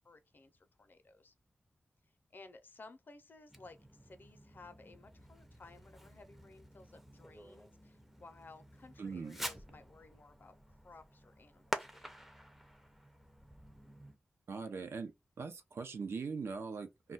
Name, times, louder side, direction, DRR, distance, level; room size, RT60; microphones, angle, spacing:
voice 1, 0.0-1.3 2.3-3.8 4.0-10.6 10.8-12.3, left 3 dB, 55° left, 0.5 m, -57 dB
Fireworks, 3.5-14.2, equal, 5° right, 0.4 m, -48 dB
voice 2, 9.0-9.4 14.5-15.1 15.4-17.1, right 5 dB, 85° right, 0.5 m, -41 dB
2.2 x 2.2 x 3.9 m
wide cardioid pair, 95°, 4 cm